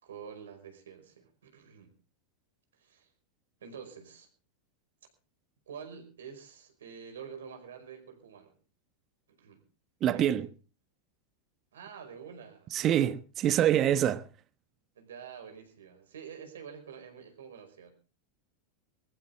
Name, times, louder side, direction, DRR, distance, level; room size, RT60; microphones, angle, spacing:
voice 1, 0.0-1.9 2.7-3.1 3.6-4.3 5.7-8.5 9.4-9.6 10.0-10.4 11.7-13.1 15.0-17.9, right 7 dB, 80° right, 5.2 m, -47 dB
voice 2, 10.0-10.5 12.7-14.3, right 11 dB, 40° right, 1.2 m, -25 dB
21.5 x 14.5 x 3.6 m
hypercardioid pair, 100°, 0 cm